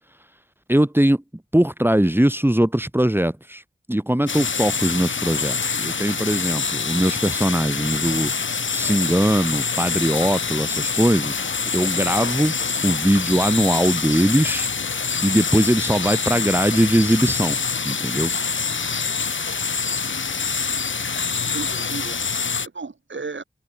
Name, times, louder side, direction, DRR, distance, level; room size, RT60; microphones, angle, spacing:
voice 1, 0.7-1.2 1.5-3.6 3.9-11.4 11.7-12.5 12.8-14.7 15.2-17.6 17.8-18.3, right 1 dB, 10° right, 2.7 m, -20 dB
sound 1, 4.3-22.7, left 5 dB, 90° left, 1.5 m, -25 dB
voice 2, 21.5-23.4, right 4 dB, 80° right, 5.7 m, -35 dB
wide cardioid pair, 55°, 19 cm